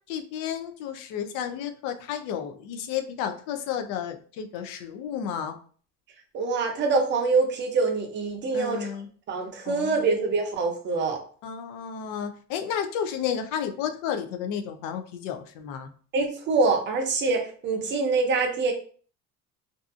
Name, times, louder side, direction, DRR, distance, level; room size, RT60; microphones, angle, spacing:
voice 1, 0.1-5.6 8.5-9.1 9.7-10.0 11.4-15.9, left 8 dB, 65° left, 7 dB, 0.5 m, -32 dB
voice 2, 6.3-8.9 9.3-11.2 16.1-18.7, right 4 dB, 30° right, 2 dB, 0.5 m, -25 dB
2.6 x 2.4 x 2.4 m, 0.44 s
cardioid pair, 165°, 35 cm